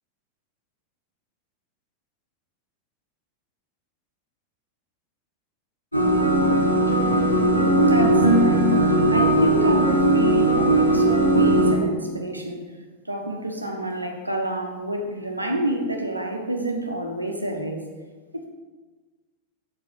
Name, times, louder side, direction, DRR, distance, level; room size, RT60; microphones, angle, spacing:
sound 1, 5.9-11.7, right 1 dB, 85° left, 1.6 m, -18 dB
voice 1, 7.9-12.6 13.0-17.8 18.3-18.4, right 1 dB, 85° right, 2 dB, 1.4 m, -28 dB
7.9 x 5.6 x 6.8 m, 1.3 s
figure-of-eight pair, 90°, 0 cm